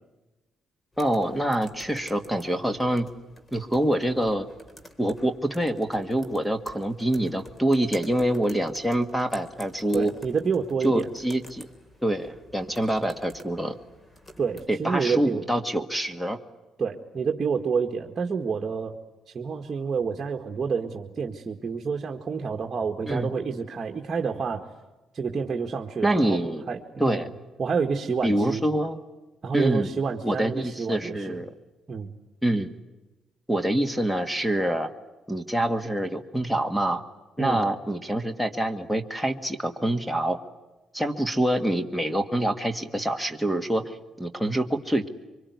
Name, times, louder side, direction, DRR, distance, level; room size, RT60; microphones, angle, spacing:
sound 1, 0.9-14.7, equal, 20° left, 3.3 m, -49 dB
voice 1, 1.0-3.1 3.5-4.5 5.0-10.1 10.8-11.7 12.0-13.8 14.7-16.4 23.1-23.3 26.0-26.6 27.0-27.3 28.2-29.0 29.5-29.9 30.2-31.5 32.4-32.7 33.5-34.9 35.3-37.0 37.4-40.4 40.9-45.1, right 1 dB, ahead, 10 dB, 1.8 m, -26 dB
voice 2, 9.9-11.1 14.4-15.4 16.8-19.0 19.3-24.7 25.1-27.3 27.6-28.6 29.4-31.4 31.9-32.1 37.4-37.6, right 5 dB, 40° right, 2 dB, 1.9 m, -28 dB
24.5 x 23.5 x 9.6 m, 1.1 s
cardioid pair, 90°, 0 cm